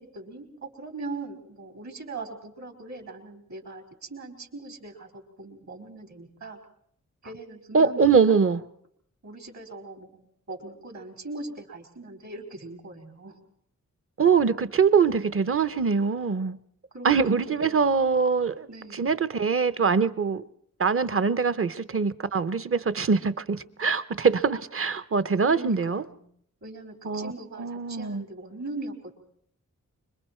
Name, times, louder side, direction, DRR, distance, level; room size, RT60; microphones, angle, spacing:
voice 1, 0.0-6.6 7.2-8.6 9.2-13.4 16.9-17.8 18.7-19.1 25.5-26.2 26.6-29.1, right 2 dB, 60° right, 4.7 m, -40 dB
voice 2, 7.7-8.6 14.2-16.6 17.0-18.7 18.9-20.4 20.8-26.0 27.0-27.3 27.6-28.2, right 5 dB, 45° right, 0.8 m, -23 dB
25.5 x 23.0 x 4.4 m
wide cardioid pair, 105°, 31 cm